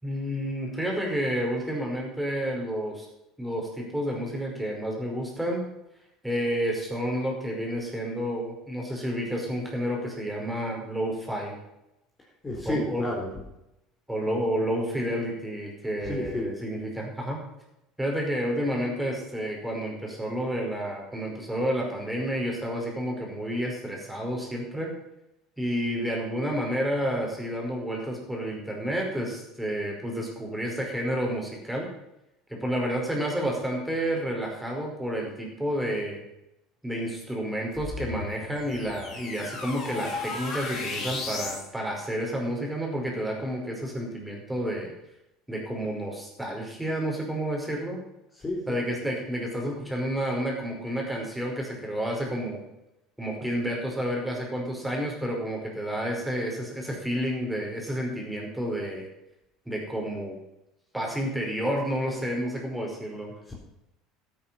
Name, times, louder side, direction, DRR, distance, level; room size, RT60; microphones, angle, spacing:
voice 1, 0.0-3.1 3.4-5.6 6.2-11.6 12.7-13.1 14.1-17.4 18.0-24.9 25.6-31.9 32.5-36.2 36.8-44.9 45.5-48.0 48.7-52.6 53.2-59.1 59.7-60.4 60.9-63.3, equal, 5° right, -1 dB, 5.2 m, -30 dB
voice 2, 12.4-13.3 16.0-16.5 48.4-48.8 63.5-63.6, left 1 dB, 20° left, -2 dB, 3.8 m, -30 dB
sound 1, 37.7-41.7, left 3 dB, 45° left, 5.2 m, -35 dB
12.5 x 9.2 x 5.8 m, 0.87 s
supercardioid pair, 90°, 0 cm